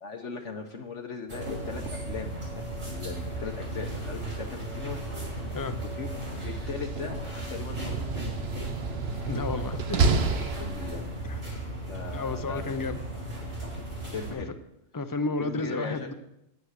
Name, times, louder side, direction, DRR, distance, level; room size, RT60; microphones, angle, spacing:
voice 1, 0.0-5.0 5.8-8.5 10.5-11.0 11.9-13.2 14.1-14.5 15.4-16.1, left 5 dB, 65° left, 3 dB, 1.4 m, -39 dB
sound 1, 1.3-14.3, right 1 dB, 75° right, 5.3 m, -36 dB
Slam, 6.5-11.2, right 4 dB, 55° right, 1.0 m, -30 dB
voice 2, 9.3-10.4 12.1-13.0 14.3-14.4 14.9-16.1, left 3 dB, 20° left, 9 dB, 0.6 m, -32 dB
9.8 x 9.7 x 6.5 m, 0.84 s
omnidirectional pair, 1.4 m